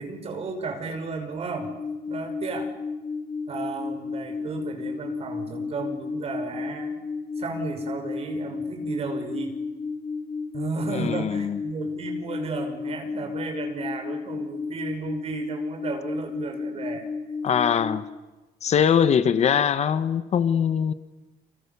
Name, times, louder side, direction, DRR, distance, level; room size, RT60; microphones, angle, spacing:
voice 1, 0.0-1.7 2.1-2.7 3.5-7.0 7.4-9.6 10.5-17.1 18.7-19.1, right 4 dB, 40° right, 5.9 m, -34 dB
sound 1, 1.6-18.1, left 4 dB, 20° left, 6.6 m, -33 dB
voice 2, 10.9-11.6 17.4-18.0 18.6-20.9, left 8 dB, 45° left, 1.4 m, -22 dB
29.5 x 28.5 x 7.0 m
cardioid pair, 175°, 15 cm